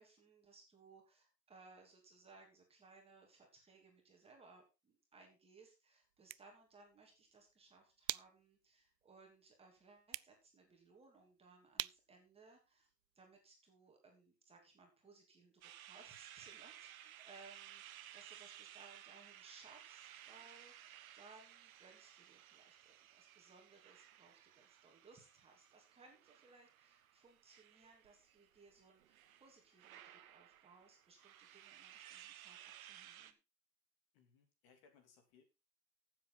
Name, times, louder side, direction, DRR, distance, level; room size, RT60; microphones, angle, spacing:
voice 1, 0.0-30.0 30.3-33.4, right 3 dB, 10° right, 1 dB, 3.0 m, -64 dB
sound 1, 6.0-13.4, right 14 dB, 85° right, 0.5 m, -50 dB
sound 2, 15.6-33.3, right 11 dB, 55° right, 1.3 m, -58 dB
voice 2, 34.1-35.4, left 6 dB, 40° left, 5 dB, 3.0 m, -68 dB
14.0 x 7.6 x 4.0 m, 0.27 s
hypercardioid pair, 130°, 49 cm